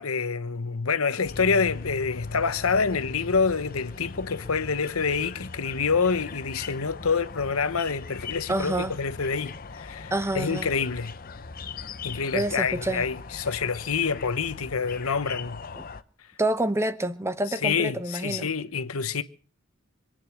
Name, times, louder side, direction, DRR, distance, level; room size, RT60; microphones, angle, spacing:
voice 1, 0.0-11.1 12.0-15.6 17.6-19.2, left 5 dB, 80° left, 1.0 m, -27 dB
sound 1, 1.2-16.0, left 4 dB, 45° left, 0.8 m, -40 dB
voice 2, 8.5-8.9 10.1-10.7 12.3-13.1 15.8-15.9 16.4-18.5, right 1 dB, 15° right, 1.0 m, -27 dB
26.0 x 9.1 x 6.1 m
head